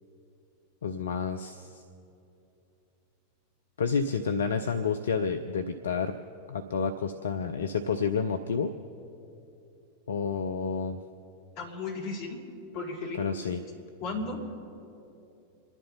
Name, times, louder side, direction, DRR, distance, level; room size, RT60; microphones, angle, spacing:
voice 1, 0.8-1.8 3.8-6.2 6.5-8.7 10.1-11.0 13.2-13.6, left 5 dB, 65° left, 8 dB, 0.6 m, -29 dB
voice 2, 11.6-12.4 12.7-13.3 14.0-14.4, left 3 dB, 45° left, -1 dB, 3.2 m, -35 dB
28.0 x 11.0 x 4.0 m, 2.8 s
figure-of-eight pair, 90°, 0 cm